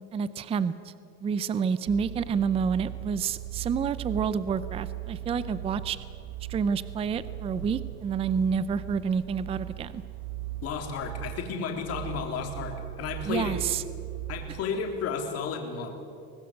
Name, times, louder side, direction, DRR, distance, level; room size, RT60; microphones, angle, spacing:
voice 1, 0.1-0.9 1.2-6.0 6.5-10.0 13.3-13.8, right 6 dB, 20° right, 15 dB, 0.5 m, -29 dB
sound 1, 1.9-14.6, right 14 dB, 60° right, 1.4 m, -39 dB
voice 2, 10.6-13.6 14.3-15.9, left 5 dB, 45° left, 2 dB, 3.7 m, -33 dB
24.0 x 18.5 x 8.0 m, 2.7 s
cardioid pair, 155°, 33 cm